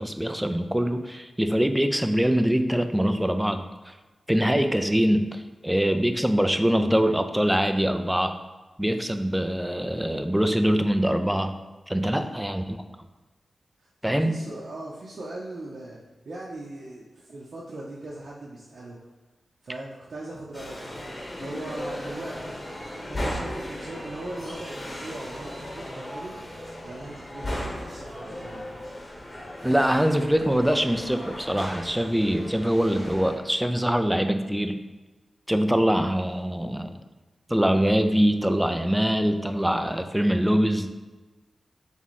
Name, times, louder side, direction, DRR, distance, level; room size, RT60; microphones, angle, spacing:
voice 1, 0.0-3.9 4.3-8.4 8.8-11.6 11.9-12.8 14.0-14.3 29.6-34.8 35.5-37.0 37.5-40.9, equal, 5° right, 8 dB, 0.3 m, -23 dB
voice 2, 13.8-16.0 16.2-19.0 19.6-21.0 21.4-22.7 23.1-26.3 26.8-28.8, right 2 dB, 65° right, -5 dB, 0.6 m, -39 dB
sound 1, 20.5-33.4, equal, 30° left, 0.9 m, -36 dB
3.5 x 3.1 x 4.1 m, 1.2 s
wide cardioid pair, 95°, 0 cm